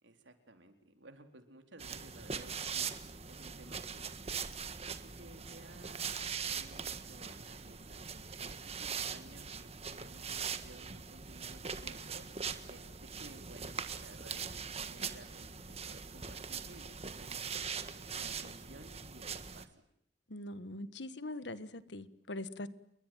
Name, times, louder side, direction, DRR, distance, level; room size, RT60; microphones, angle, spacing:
voice 1, 0.0-2.9 3.3-4.2 5.0-6.2 6.4-17.6 18.1-19.8, right 1 dB, 80° right, 6 dB, 4.2 m, -56 dB
sound 1, 1.8-19.6, right 6 dB, 35° right, 1.6 m, -41 dB
voice 2, 20.3-22.7, left 1 dB, 70° left, 14 dB, 1.5 m, -42 dB
29.0 x 22.0 x 9.3 m, 0.71 s
head